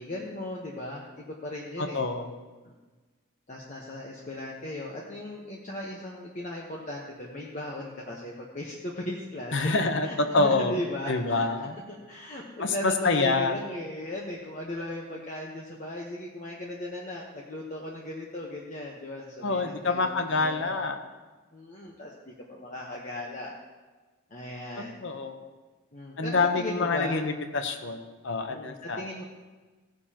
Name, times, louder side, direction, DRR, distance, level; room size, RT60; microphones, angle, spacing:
voice 1, 0.0-2.0 2.6-2.7 3.5-11.5 11.9-20.8 21.5-23.6 24.3-25.0 25.9-27.2 28.5-29.2, left 1 dB, 35° left, -3 dB, 1.1 m, -37 dB
voice 2, 1.8-2.3 9.5-10.8 11.1-11.7 12.6-13.5 19.4-21.0 24.8-25.5 26.2-29.1, left 3 dB, 60° left, 7 dB, 0.8 m, -27 dB
16.5 x 9.6 x 2.9 m, 1.3 s
head